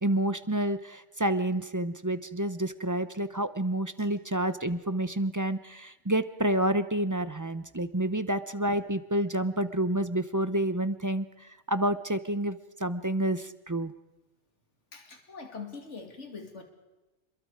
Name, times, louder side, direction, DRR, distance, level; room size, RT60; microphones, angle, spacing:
voice 1, 0.0-11.3 11.7-13.9, right 1 dB, 20° right, 12 dB, 0.6 m, -29 dB
voice 2, 14.9-16.6, left 4 dB, 85° left, 3 dB, 2.7 m, -43 dB
27.5 x 22.5 x 4.8 m, 1.1 s
omnidirectional pair, 1.2 m